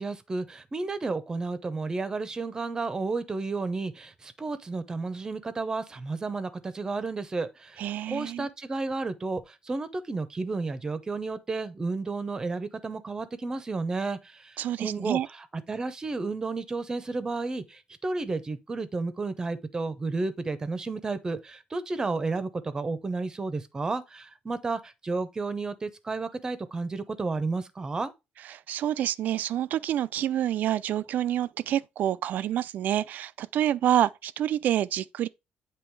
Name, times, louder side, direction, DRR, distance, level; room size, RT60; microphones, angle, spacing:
voice 1, 0.0-28.1, right 3 dB, 20° right, 0.8 m, -32 dB
voice 2, 7.8-8.5 14.6-15.3 28.5-35.3, right 11 dB, 60° right, 0.4 m, -27 dB
8.9 x 3.0 x 4.6 m
cardioid pair, 135°, 3 cm